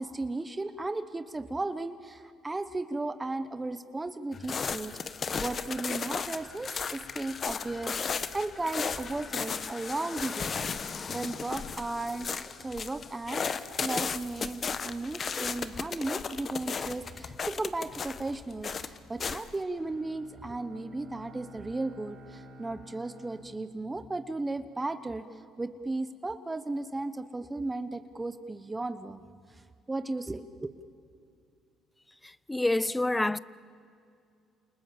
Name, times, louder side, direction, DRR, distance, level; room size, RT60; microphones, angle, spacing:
voice 1, 0.0-10.5 11.1-25.3 25.6-29.2 29.5-29.6 29.9-30.7, right 2 dB, 15° right, 1.0 m, -35 dB
sound 1, 4.3-19.6, left 6 dB, 40° left, 1.1 m, -35 dB
Bowed string instrument, 19.7-24.7, left 1 dB, 55° right, 4.4 m, -51 dB
voice 2, 32.2-33.4, left 2 dB, 10° left, 0.6 m, -27 dB
29.0 x 28.0 x 7.3 m
cardioid pair, 95°, 0 cm